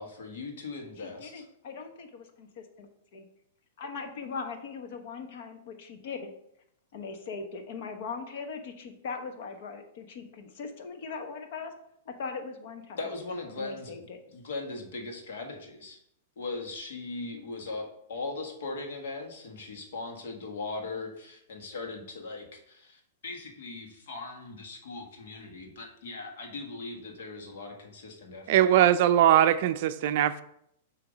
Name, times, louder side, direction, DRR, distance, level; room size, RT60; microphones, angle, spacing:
voice 1, 0.0-1.5 13.0-14.0 14.3-16.0 16.4-28.8, left 3 dB, 75° left, 2 dB, 1.5 m, -39 dB
voice 2, 1.0-3.3 3.8-6.3 6.9-11.7 12.1-13.1 13.5-14.2, left 5 dB, 55° left, 5 dB, 1.0 m, -40 dB
voice 3, 28.5-30.4, right 11 dB, 55° right, 11 dB, 0.4 m, -21 dB
6.8 x 2.9 x 5.1 m, 0.74 s
hypercardioid pair, 145°, 0 cm